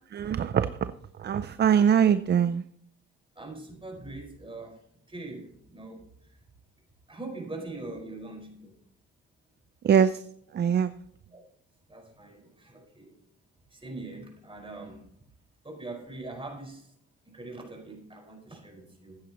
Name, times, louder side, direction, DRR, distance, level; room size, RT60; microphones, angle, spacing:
voice 1, 0.1-0.8 1.2-2.6 9.8-10.2 10.5-10.9, right 8 dB, 35° right, 14 dB, 0.4 m, -22 dB
voice 2, 3.3-4.8 5.1-6.0 7.1-8.7 11.3-11.4 11.9-13.1 13.7-15.0 15.6-16.9 17.3-19.2, right 2 dB, 15° right, 0 dB, 5.0 m, -42 dB
14.5 x 9.2 x 3.0 m, 0.68 s
cardioid pair, 90°, 30 cm